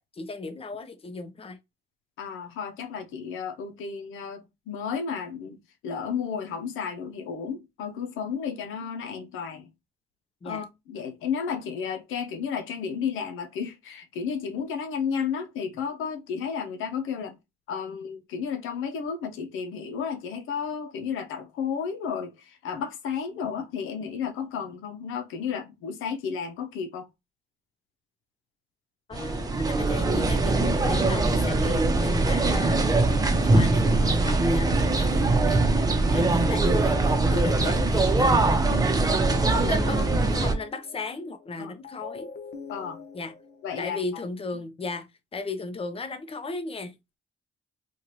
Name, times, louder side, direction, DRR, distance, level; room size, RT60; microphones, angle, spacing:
voice 1, 0.1-1.6 10.4-10.6 29.1-32.8 33.4-38.5 39.5-42.3 43.1-43.3 43.8-46.9, left 3 dB, 30° left, 0.8 m, -36 dB
voice 2, 2.2-9.7 10.4-17.4 17.7-27.1 38.7-38.9 41.6-41.7 42.7-43.0 43.6-44.0, left 6 dB, 90° left, 0.7 m, -32 dB
sound 1, 29.1-40.5, right 2 dB, 20° right, 0.8 m, -22 dB
sound 2, 39.1-44.2, left 5 dB, 55° left, 1.2 m, -43 dB
4.5 x 2.4 x 2.9 m
cardioid pair, 90°, 20 cm